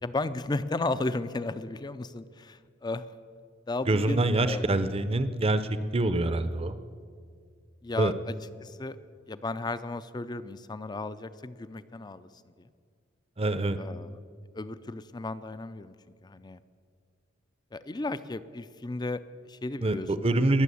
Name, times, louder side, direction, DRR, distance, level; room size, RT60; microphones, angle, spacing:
voice 1, 0.0-3.1 3.7-4.6 7.8-8.3 8.6-9.0 9.3-12.7 13.8-14.2 14.5-15.9 16.2-16.6 17.7-20.1 20.4-20.5, left 2 dB, 20° left, 14 dB, 0.5 m, -34 dB
voice 2, 3.9-6.8 8.0-8.1 13.4-13.8 19.8-20.6, right 2 dB, 30° right, 12 dB, 0.7 m, -25 dB
21.5 x 7.3 x 8.5 m, 2.1 s
head